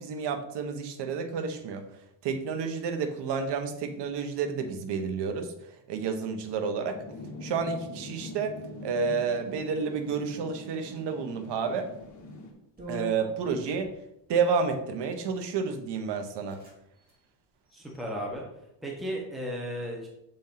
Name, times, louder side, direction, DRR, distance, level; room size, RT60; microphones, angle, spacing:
voice 1, 0.0-1.8 2.2-5.5 5.9-7.0 7.4-8.6 8.8-11.9 12.9-13.9 14.3-16.6, right 5 dB, 55° right, 7 dB, 1.1 m, -30 dB
sound 1, 6.9-12.5, left 2 dB, 35° left, 1.6 m, -43 dB
sound 2, 12.0-12.2 12.8-13.9 14.9-15.3 15.9-16.0 16.2-16.8 17.0-17.2 17.7-18.3, left 1 dB, 20° right, 2.8 m, -44 dB
voice 2, 17.7-18.4 18.8-20.1, equal, ahead, -2 dB, 1.3 m, -34 dB
7.0 x 4.5 x 3.9 m, 0.82 s
cardioid pair, 115°, 49 cm